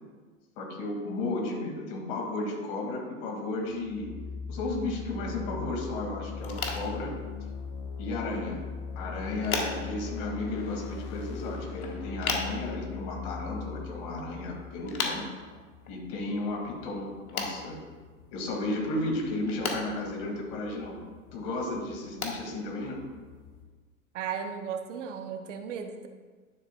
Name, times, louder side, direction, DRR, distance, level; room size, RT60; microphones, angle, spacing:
voice 1, 0.6-4.1 4.5-7.1 8.0-8.6 9.0-15.3 15.9-17.8 18.3-21.0 21.3-23.0, left 2 dB, 45° left, 0 dB, 2.2 m, -34 dB
sound 1, 3.8-15.5, left 6 dB, 25° left, 0.3 m, -39 dB
sound 2, 6.4-23.6, left 4 dB, 80° left, 1.4 m, -40 dB
voice 2, 24.1-26.1, right 7 dB, 55° right, 6 dB, 0.9 m, -35 dB
11.0 x 6.6 x 2.3 m, 1.4 s
hypercardioid pair, 105°, 42 cm